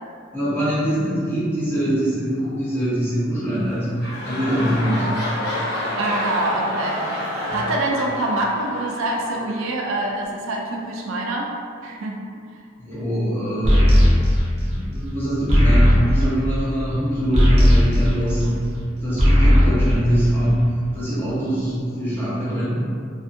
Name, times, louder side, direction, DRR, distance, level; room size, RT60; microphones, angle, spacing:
voice 1, 0.3-3.9 4.2-5.1 7.5-7.6 12.8-14.0 14.6-18.7 19.0-22.8, equal, 10° left, -11 dB, 0.8 m, -23 dB
sound 1, 3.6-9.9 10.6-10.7, left 1 dB, 55° left, 0.6 m, -29 dB
voice 2, 5.9-11.5 11.8-12.2, right 2 dB, 90° right, -1 dB, 0.4 m, -25 dB
sound 2, 13.6-18.8 19.1-20.8, equal, 35° right, 0.6 m, -17 dB
2.6 x 2.5 x 2.5 m, 2.2 s
head